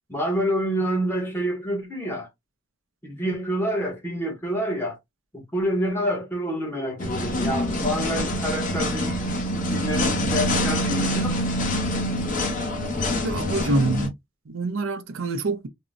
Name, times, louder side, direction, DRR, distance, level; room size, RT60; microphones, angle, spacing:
voice 1, 0.1-2.3 3.0-5.0 5.3-9.1 9.7-11.4, equal, 10° left, 0.9 m, -27 dB
sound 1, 7.0-14.1, left 1 dB, 40° left, 0.8 m, -25 dB
voice 2, 13.2-14.1 14.5-15.7, right 2 dB, 75° right, 0.5 m, -25 dB
3.6 x 2.0 x 2.5 m
head